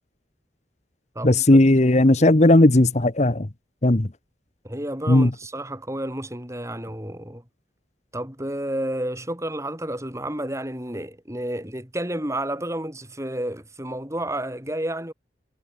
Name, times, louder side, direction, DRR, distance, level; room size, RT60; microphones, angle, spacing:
voice 1, 1.2-3.5 3.8-4.1 5.1-5.3, left 1 dB, 40° left, 1.1 m, -16 dB
voice 2, 4.6-7.4 8.1-15.1, right 1 dB, 15° right, 7.3 m, -31 dB
head